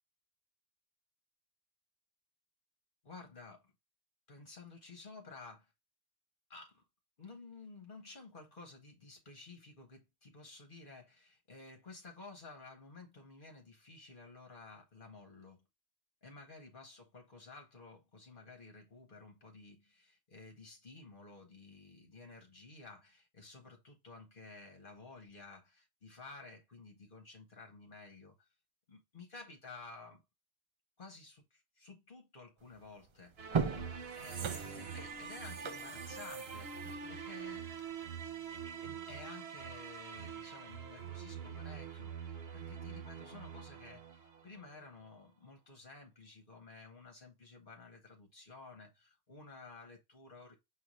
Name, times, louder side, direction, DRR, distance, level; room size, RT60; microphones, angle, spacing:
voice 1, 3.0-3.7 4.3-5.7 6.5-6.8 7.2-15.6 16.2-28.5 28.9-30.2 31.0-33.6 34.2-37.7 38.5-50.6, left 3 dB, 50° left, 1.2 m, -53 dB
sound 1, 32.7-32.9 33.3-38.1 38.5-38.6, right 6 dB, 50° right, 0.3 m, -39 dB
sound 2, 33.4-44.7, right 7 dB, 65° right, 1.1 m, -45 dB
6.3 x 2.6 x 3.0 m
omnidirectional pair, 1.1 m